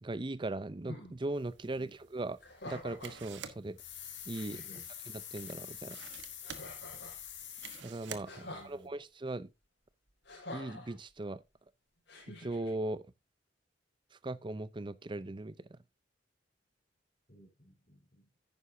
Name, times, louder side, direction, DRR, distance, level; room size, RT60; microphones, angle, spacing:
voice 1, 0.0-2.4 2.6-3.8 4.3-4.6 5.3-6.0 7.8-9.5 10.5-11.4 12.3-13.1 14.1-15.8, right 2 dB, 25° right, 0.5 m, -39 dB
sound 1, 0.9-1.2 2.4-3.2 3.9-4.0 4.3-4.8 6.4-7.2 8.2-8.7 10.2-10.9 12.1-12.7, left 1 dB, 65° left, 5.2 m, -47 dB
sound 2, 1.4-8.9, right 6 dB, 80° right, 1.2 m, -52 dB
sound 3, 3.8-7.8, left 9 dB, 90° left, 3.2 m, -46 dB
voice 2, 8.4-9.0 17.3-18.4, right 1 dB, 40° left, 3.7 m, -58 dB
10.5 x 9.7 x 2.7 m
head